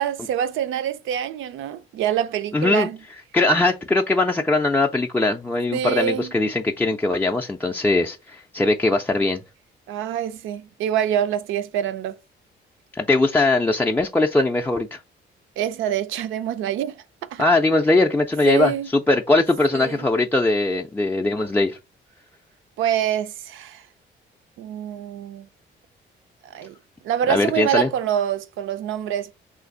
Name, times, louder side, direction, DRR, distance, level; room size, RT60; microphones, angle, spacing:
voice 1, 0.0-3.0 5.7-6.3 9.9-12.1 15.6-17.0 17.3-17.4 18.4-18.9 19.7-20.0 22.8-23.8 24.6-25.5 26.4-26.7 27.0-29.3, right 10 dB, 80° right, 0.5 m, -25 dB
voice 2, 2.5-2.9 3.3-9.4 12.9-15.0 17.4-21.8 27.3-27.9, left 2 dB, 10° left, 0.3 m, -20 dB
3.2 x 2.5 x 3.7 m
cardioid pair, 90°, 20 cm